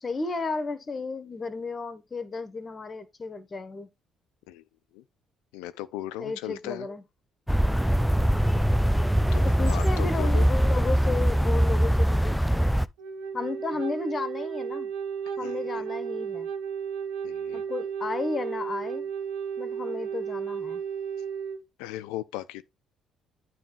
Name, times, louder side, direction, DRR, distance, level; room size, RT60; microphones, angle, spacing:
voice 1, 0.0-3.9 6.2-7.0 9.4-12.7 13.3-14.9 15.4-16.5 17.5-19.1 19.6-20.8, left 3 dB, 35° left, 1.5 m, -33 dB
voice 2, 5.5-6.9 9.3-10.5 15.4-15.8 17.2-17.7 21.8-22.6, left 14 dB, 80° left, 0.6 m, -37 dB
sound 1, 7.5-12.9, equal, ahead, 0.5 m, -22 dB
Wind instrument woodwind instrument, 13.0-21.6, right 7 dB, 80° right, 0.9 m, -33 dB
9.3 x 3.3 x 5.2 m
hypercardioid pair, 60°, 0 cm